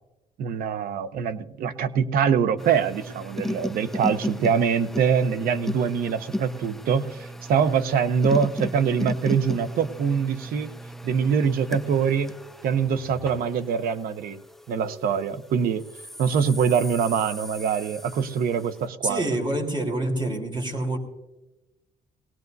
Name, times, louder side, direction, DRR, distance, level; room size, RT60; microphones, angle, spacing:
voice 1, 0.4-10.7 11.0-12.3 12.6-14.4 14.7-15.9 16.2-19.3, right 7 dB, 85° right, 12 dB, 0.8 m, -24 dB
sound 1, 2.6-15.2 15.8-18.7, left 1 dB, ahead, 0.5 m, -35 dB
voice 2, 19.0-21.0, right 1 dB, 35° right, 2 dB, 3.8 m, -27 dB
20.5 x 18.0 x 2.7 m, 0.99 s
cardioid pair, 125°, 15 cm